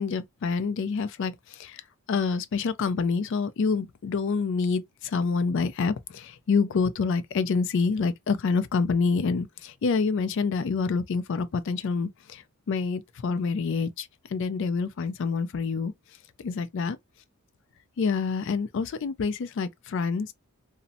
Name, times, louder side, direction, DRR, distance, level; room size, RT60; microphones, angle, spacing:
voice 1, 0.0-1.8 2.1-15.9 16.4-17.0 18.0-20.3, left 4 dB, 55° left, 0.3 m, -27 dB
2.6 x 2.0 x 2.5 m
head